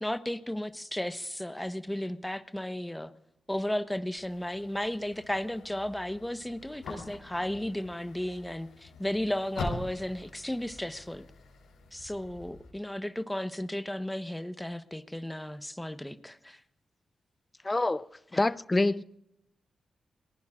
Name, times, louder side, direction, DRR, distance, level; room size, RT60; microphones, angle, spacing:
voice 1, 0.0-3.1 3.5-11.3 11.9-16.6 18.3-18.4, left 1 dB, 10° left, 1.1 m, -34 dB
sound 1, 4.2-12.7, left 3 dB, 85° left, 3.3 m, -44 dB
voice 2, 17.6-18.0 18.3-19.0, left 2 dB, 25° left, 0.6 m, -26 dB
27.5 x 19.0 x 2.5 m
supercardioid pair, 45°, 0 cm